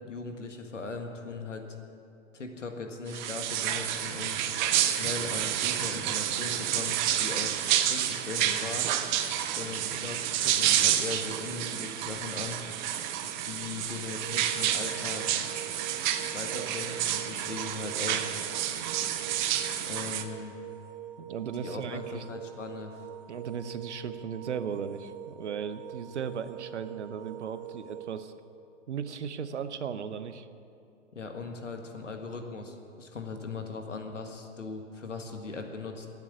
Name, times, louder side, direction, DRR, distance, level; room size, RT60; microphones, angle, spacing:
voice 1, 0.0-1.6 2.3-4.4 4.8-7.6 7.9-8.9 9.5-12.6 13.4-15.3 16.2-18.3 19.8-20.6 21.5-23.0 31.1-36.1, left 4 dB, 75° left, 4 dB, 1.8 m, -39 dB
sound 1, 3.1-20.2, right 11 dB, 40° right, 0.9 m, -29 dB
sound 2, 14.1-28.2, right 11 dB, 10° right, 0.4 m, -45 dB
voice 2, 21.2-22.2 23.3-28.3 28.9-30.5, right 7 dB, 65° right, 11 dB, 0.9 m, -36 dB
12.5 x 9.5 x 9.5 m, 2.6 s
figure-of-eight pair, 105°, 37 cm